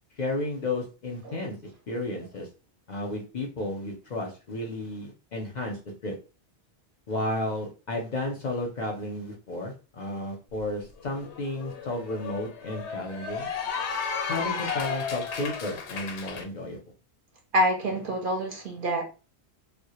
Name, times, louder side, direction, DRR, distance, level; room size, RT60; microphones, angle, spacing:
voice 1, 0.2-1.6 1.9-2.5 2.9-6.1 7.1-13.5 14.3-16.8, left 1 dB, 55° left, 1 dB, 0.6 m, -33 dB
Cheering / Applause, 10.6-10.7 11.0-16.4, left 6 dB, 85° left, 0.9 m, -33 dB
voice 2, 17.5-19.0, equal, 60° right, 2 dB, 0.7 m, -26 dB
2.1 x 2.1 x 2.8 m, 0.32 s
omnidirectional pair, 1.1 m